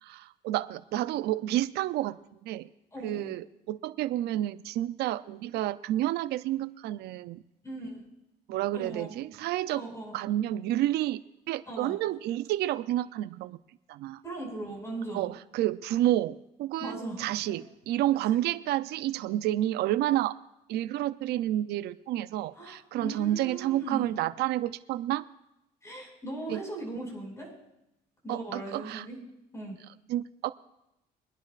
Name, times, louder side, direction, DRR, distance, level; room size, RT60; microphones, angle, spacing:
voice 1, 0.0-2.2 2.4-2.7 3.0-7.4 8.5-9.9 10.1-11.2 11.5-13.6 13.9-14.2 15.1-20.3 20.7-25.2 26.5-26.6 28.3-29.1 30.1-30.5, right 14 dB, 75° right, 15 dB, 0.5 m, -30 dB
voice 2, 2.9-3.3 7.6-8.1 8.7-9.1 9.8-10.2 11.7-12.0 14.2-15.3 16.8-17.2 17.5-17.7 22.6-24.2 25.8-27.5 28.2-29.2 29.5-29.8, right 2 dB, 15° left, -1 dB, 5.6 m, -39 dB
24.0 x 10.5 x 2.5 m, 0.87 s
cardioid pair, 110°, 17 cm